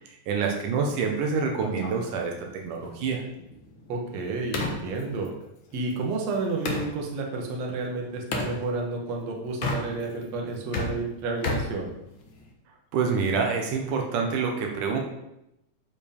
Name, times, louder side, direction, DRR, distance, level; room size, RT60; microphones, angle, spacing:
voice 1, 0.1-3.2 12.9-15.0, right 5 dB, 80° right, 1 dB, 2.8 m, -27 dB
sound 1, 1.6-6.9 8.3-8.6 9.5-10.2 10.5-12.5, left 2 dB, 50° left, 1.8 m, -34 dB
voice 2, 3.9-5.3 5.7-11.9, right 3 dB, 60° right, 0 dB, 2.6 m, -31 dB
12.0 x 5.1 x 5.4 m, 0.84 s
omnidirectional pair, 3.6 m